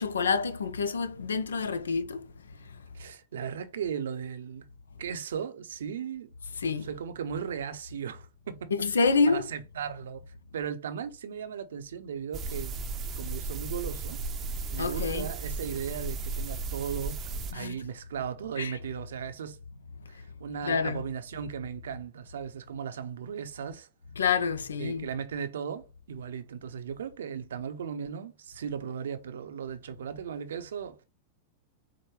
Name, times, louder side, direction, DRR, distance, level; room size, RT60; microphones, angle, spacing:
voice 1, 0.0-2.8 6.6-6.9 8.7-9.5 14.8-15.3 17.5-17.8 18.6-18.8 20.6-21.0 24.2-25.1, left 5 dB, 85° left, 0.4 m, -28 dB
voice 2, 2.9-4.6 5.0-6.3 6.8-8.7 9.3-10.2 10.5-12.8 13.2-14.2 14.7-17.2 17.5-19.6 20.1-23.9 24.8-31.0, right 7 dB, 80° right, 0.6 m, -36 dB
sound 1, 12.3-17.5, right 3 dB, 30° right, 0.5 m, -35 dB
4.8 x 2.1 x 3.1 m
hypercardioid pair, 100°, 0 cm